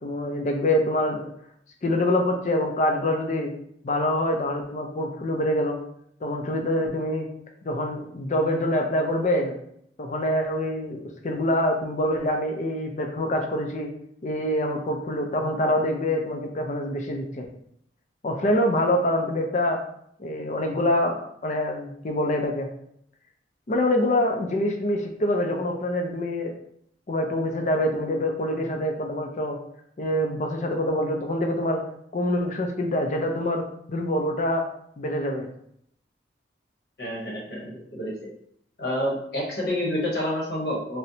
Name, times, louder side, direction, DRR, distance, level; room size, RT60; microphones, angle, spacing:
voice 1, 0.0-1.2 1.8-3.5 3.8-5.8 6.2-7.3 7.6-9.5 10.0-13.9 14.2-17.5 18.2-19.8 20.2-21.2 21.4-22.7 23.7-26.5 27.1-29.6 30.0-31.8 32.1-34.6 35.0-35.5, left 1 dB, 40° left, 3 dB, 0.4 m, -25 dB
voice 2, 37.0-38.3 38.8-41.0, left 1 dB, 55° left, -3 dB, 1.0 m, -29 dB
4.1 x 2.1 x 2.7 m, 0.70 s
head